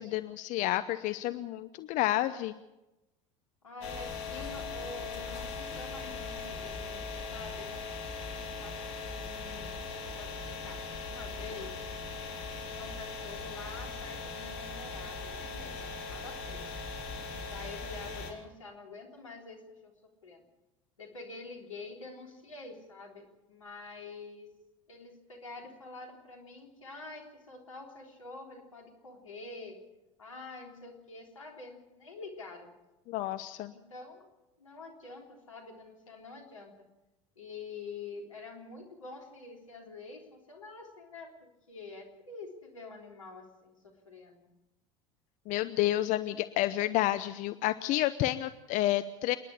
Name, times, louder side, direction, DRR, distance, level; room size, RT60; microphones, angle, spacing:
voice 1, 0.0-2.5 33.1-33.7 45.5-49.4, left 15 dB, 50° left, 13 dB, 0.8 m, -30 dB
voice 2, 3.6-8.1 8.3-11.7 12.6-16.7 17.5-19.9 20.2-20.5 21.0-24.5 24.9-29.8 30.2-32.7 33.7-34.3 34.6-36.7 37.4-44.5, left 3 dB, 90° left, 1 dB, 3.6 m, -47 dB
sound 1, 3.8-18.3, left 4 dB, 70° left, 3.9 m, -40 dB
28.0 x 10.5 x 8.6 m, 1.0 s
hypercardioid pair, 75°, 16 cm